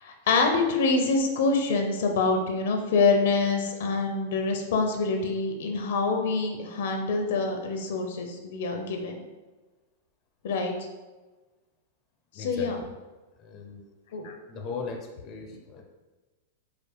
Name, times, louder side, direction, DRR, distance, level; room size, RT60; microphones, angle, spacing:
voice 1, 0.0-9.2 10.4-10.7 12.4-12.8 14.1-14.3, left 3 dB, 70° left, 4 dB, 0.8 m, -26 dB
voice 2, 12.3-12.9 13.4-13.9 14.5-15.8, left 4 dB, 30° left, 1 dB, 0.6 m, -38 dB
5.2 x 2.1 x 4.6 m, 1.2 s
supercardioid pair, 145°, 0 cm